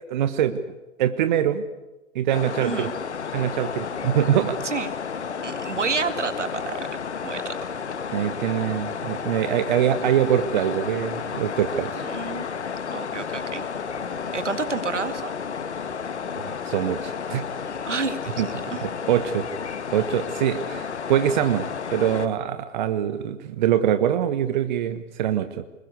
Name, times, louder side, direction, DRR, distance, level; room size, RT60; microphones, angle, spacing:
voice 1, 0.1-0.6 1.0-1.6 2.1-2.9 3.3-4.6 8.1-12.0 16.7-17.4 18.4-19.5 19.9-25.6, right 10 dB, 40° right, 10 dB, 1.2 m, -24 dB
sound 1, 2.3-22.3, left 6 dB, 65° left, 1.6 m, -32 dB
voice 2, 2.6-2.9 4.6-4.9 5.4-7.6 12.0-12.5 12.9-13.7 14.3-15.3 17.8-18.9, right 4 dB, 70° right, 10 dB, 2.2 m, -30 dB
25.0 x 21.5 x 8.3 m, 1.0 s
figure-of-eight pair, 115°, 37 cm